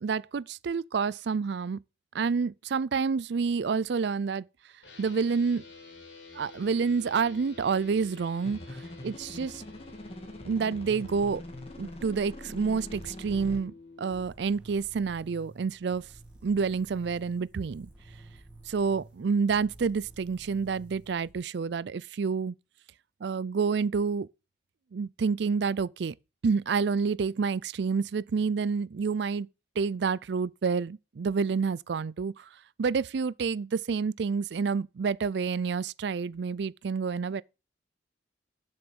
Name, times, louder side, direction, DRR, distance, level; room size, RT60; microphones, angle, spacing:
voice 1, 0.0-1.8 2.1-4.4 5.0-5.6 6.3-8.8 9.0-9.6 10.5-11.4 11.8-16.0 16.4-17.9 18.7-22.5 23.2-24.3 24.9-26.1 26.4-29.5 29.8-32.4 32.8-37.4, right 5 dB, 60° right, 0.4 m, -28 dB
sound 1, 4.8-14.2, left 3 dB, 70° left, 3.8 m, -49 dB
sound 2, 8.4-13.6, left 1 dB, 30° left, 1.7 m, -43 dB
sound 3, 14.1-21.4, right 2 dB, 5° right, 2.5 m, -52 dB
7.9 x 6.6 x 6.2 m
head